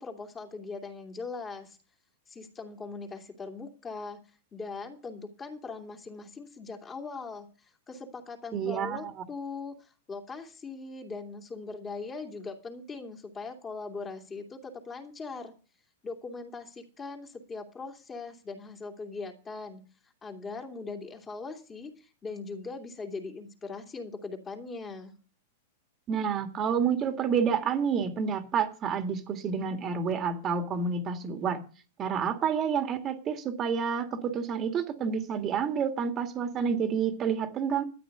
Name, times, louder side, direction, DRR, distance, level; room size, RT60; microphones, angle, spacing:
voice 1, 0.0-1.8 2.3-4.2 4.5-15.5 16.0-19.8 20.2-25.2, left 4 dB, 20° left, 4 dB, 2.6 m, -40 dB
voice 2, 8.5-9.0 26.1-31.6 32.0-37.8, right 6 dB, 30° right, 7 dB, 1.9 m, -29 dB
13.0 x 9.4 x 6.7 m, 0.38 s
hypercardioid pair, 130°, 0 cm